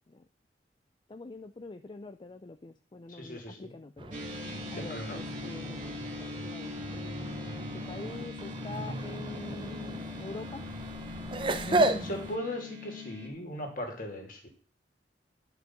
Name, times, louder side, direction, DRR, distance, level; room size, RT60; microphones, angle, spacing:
voice 1, 1.1-4.2 4.7-5.8 6.0-10.6, left 3 dB, 30° left, 9 dB, 0.4 m, -45 dB
voice 2, 3.1-3.7 4.8-5.2 11.7-14.5, equal, 50° left, 2 dB, 2.6 m, -38 dB
sound 1, 4.0-12.4, right 2 dB, 30° right, 0.7 m, -34 dB
sound 2, 4.1-13.3, left 4 dB, 45° right, 2.2 m, -42 dB
10.5 x 5.5 x 5.9 m, 0.41 s
head